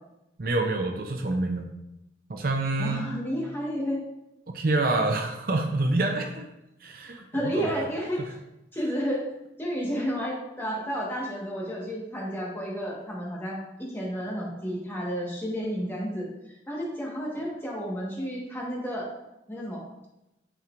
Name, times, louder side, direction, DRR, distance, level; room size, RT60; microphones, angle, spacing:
voice 1, 0.4-1.7 2.3-3.1 4.5-6.4 6.8-7.7, right 2 dB, 50° right, 3 dB, 0.6 m, -27 dB
voice 2, 2.8-4.0 7.3-8.4 8.7-9.2 9.6-16.3 16.7-19.1 19.5-19.8, equal, 15° left, -4 dB, 1.4 m, -31 dB
8.7 x 4.4 x 2.5 m, 0.91 s
head